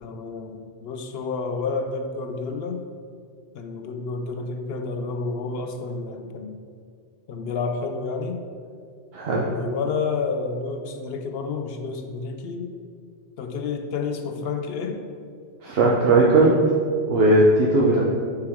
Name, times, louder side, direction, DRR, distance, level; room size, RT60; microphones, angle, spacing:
voice 1, 0.0-2.9 3.5-6.5 7.3-8.4 9.5-12.7 13.4-15.0, left 4 dB, 65° left, 5 dB, 0.8 m, -30 dB
voice 2, 9.1-9.5 15.6-16.5 17.1-18.0, right 2 dB, 65° right, -4 dB, 0.9 m, -17 dB
6.7 x 4.6 x 3.5 m, 2.2 s
omnidirectional pair, 1.1 m